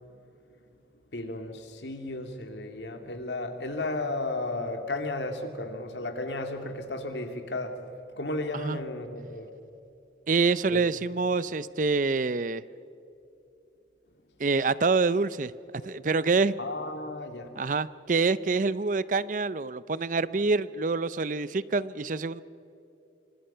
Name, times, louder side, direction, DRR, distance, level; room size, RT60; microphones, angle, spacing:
voice 1, 1.1-7.8 8.2-9.5 10.7-10.8 16.6-17.5, left 2 dB, 80° left, 5 dB, 2.5 m, -34 dB
voice 2, 10.3-12.6 14.4-15.5 15.8-16.5 17.6-22.4, right 4 dB, 45° right, 17 dB, 0.5 m, -26 dB
26.5 x 25.0 x 5.7 m, 2.8 s
head